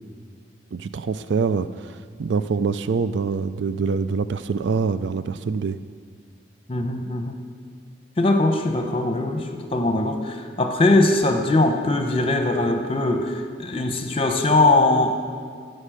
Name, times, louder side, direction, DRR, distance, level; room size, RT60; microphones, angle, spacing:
voice 1, 0.7-5.8, right 5 dB, 80° right, 13 dB, 0.4 m, -25 dB
voice 2, 6.7-7.4 8.2-15.1, left 2 dB, 30° left, 5 dB, 1.0 m, -21 dB
15.0 x 6.5 x 6.5 m, 2.1 s
head